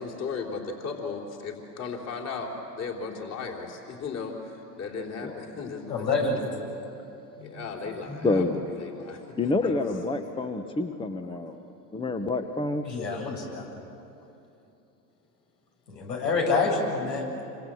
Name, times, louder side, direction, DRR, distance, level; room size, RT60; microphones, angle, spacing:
voice 1, 0.0-2.5 2.8-6.3 7.4-9.7, left 5 dB, 30° left, 1 dB, 3.9 m, -36 dB
voice 2, 5.9-6.6 7.4-7.5 12.8-13.7 15.9-17.4, left 3 dB, 80° left, 0 dB, 7.6 m, -27 dB
voice 3, 8.1-8.6 9.4-11.6 11.9-12.8, left 3 dB, 10° left, 8 dB, 1.1 m, -28 dB
27.5 x 25.5 x 7.8 m, 2.8 s
hypercardioid pair, 100°, 50 cm